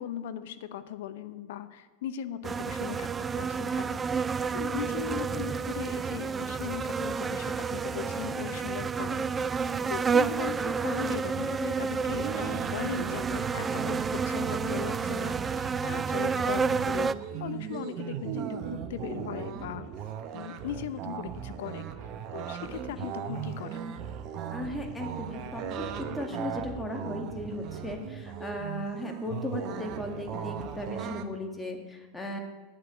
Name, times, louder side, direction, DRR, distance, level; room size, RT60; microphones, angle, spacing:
voice 1, 0.0-3.1 3.3-9.3 9.9-17.1 17.4-19.9 20.3-21.9 22.3-23.9, left 11 dB, 60° left, 12 dB, 0.7 m, -38 dB
sound 1, 2.4-17.1, right 5 dB, 20° right, 0.3 m, -30 dB
sound 2, 12.0-31.2, right 8 dB, 45° right, 0.9 m, -38 dB
voice 2, 24.5-32.4, left 1 dB, 10° left, 3 dB, 2.0 m, -36 dB
8.7 x 7.9 x 8.3 m, 1.3 s
figure-of-eight pair, 85°, 0 cm